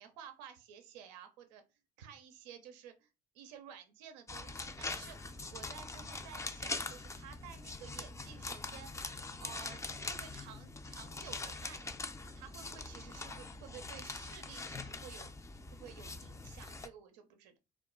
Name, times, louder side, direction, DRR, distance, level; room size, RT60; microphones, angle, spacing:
voice 1, 0.0-1.6 2.0-9.1 9.4-11.9 12.4-15.3 15.7-17.6, right 8 dB, 90° right, 7 dB, 0.5 m, -53 dB
sound 1, 4.3-16.9, left 3 dB, 15° left, 0.4 m, -43 dB
2.3 x 2.2 x 3.6 m, 0.27 s
hypercardioid pair, 65°, 21 cm